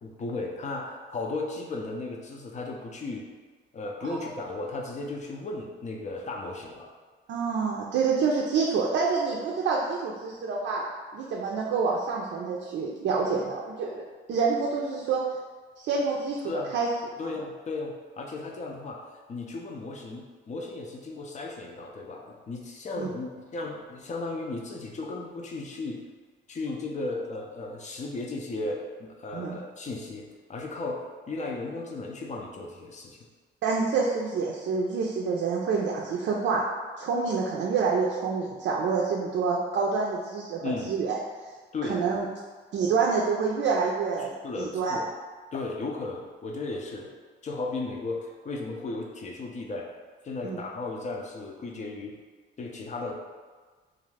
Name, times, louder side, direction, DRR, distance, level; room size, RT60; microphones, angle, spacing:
voice 1, 0.0-3.3 3.7-6.9 16.4-16.7 17.2-19.0 19.3-26.0 26.5-33.2 40.6-40.9 41.7-42.0 44.2-45.1 45.5-47.1 47.4-49.9 50.2-52.2 52.6-53.2, left 3 dB, 35° left, 0 dB, 0.5 m, -35 dB
voice 2, 7.3-10.8 11.1-14.0 14.3-15.2 15.8-16.4 16.7-16.9 17.2-17.3 23.0-23.1 29.3-29.6 33.6-36.6 37.0-40.6 40.9-41.2 41.9-42.3 42.7-45.0 50.4-50.6, right 5 dB, 65° right, -3 dB, 0.5 m, -27 dB
2.5 x 2.4 x 3.2 m, 1.4 s
cardioid pair, 90°, 20 cm